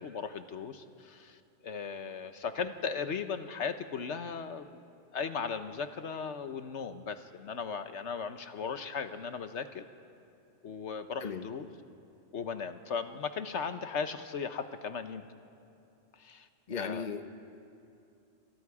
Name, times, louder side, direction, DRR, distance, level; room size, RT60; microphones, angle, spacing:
voice 1, 0.0-4.8 5.1-9.9 10.6-11.7 12.3-15.2 16.1-17.1, left 5 dB, 70° left, 9 dB, 1.2 m, -37 dB
voice 2, 16.7-17.3, left 6 dB, 40° left, 8 dB, 1.1 m, -36 dB
27.0 x 26.5 x 4.9 m, 2.7 s
omnidirectional pair, 1.2 m